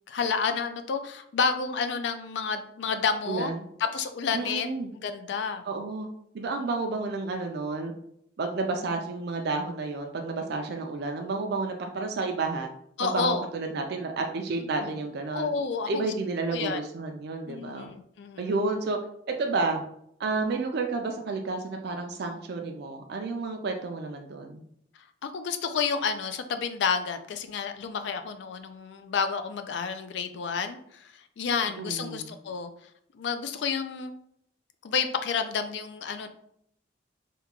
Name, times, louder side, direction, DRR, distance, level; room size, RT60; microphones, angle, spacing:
voice 1, 0.1-3.5 3.9-5.6 13.0-13.5 14.8-14.9 15.3-16.1 16.5-16.8 17.5-18.5 25.2-32.7 33.1-34.1 34.8-36.3, left 5 dB, 65° left, 8 dB, 0.3 m, -30 dB
voice 2, 3.3-3.6 4.3-4.9 5.6-6.1 6.3-7.9 8.4-12.7 13.0-15.5 15.9-17.9 18.4-19.0 19.3-19.8 20.2-24.6 31.8-32.3, right 3 dB, 55° right, 3 dB, 0.4 m, -31 dB
2.9 x 2.3 x 3.6 m, 0.70 s
head